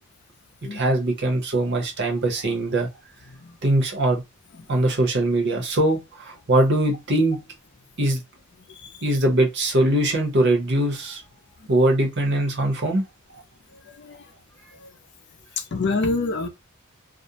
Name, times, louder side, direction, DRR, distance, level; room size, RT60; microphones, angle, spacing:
voice 1, 0.7-2.9 3.6-4.2 4.7-7.4 8.0-8.2 9.0-11.2 11.7-13.1, right 1 dB, 55° right, 0.8 m, -21 dB
voice 2, 15.7-16.5, left 3 dB, 55° left, 0.5 m, -26 dB
2.5 x 2.0 x 2.7 m
head